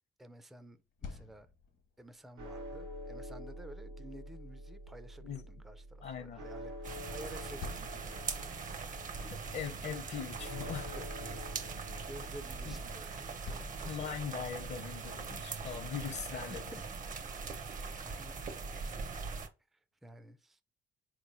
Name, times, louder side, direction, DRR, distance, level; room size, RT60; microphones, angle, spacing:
voice 1, 0.2-1.5 2.0-9.4 10.9-11.6 12.0-14.1 16.1-18.4 19.7-20.6, right 1 dB, ahead, 0.3 m, -53 dB
sound 1, 0.7-14.7, left 5 dB, 75° left, 1.0 m, -55 dB
sound 2, 2.4-16.6, equal, 75° right, 0.9 m, -48 dB
voice 2, 6.0-6.4 9.3-11.0 11.3-11.4 12.7-12.8 13.8-16.6, left 7 dB, 60° left, 0.7 m, -41 dB
sound 3, 6.8-19.5, right 4 dB, 40° right, 0.6 m, -42 dB
4.0 x 3.0 x 2.5 m
cardioid pair, 90°, 20 cm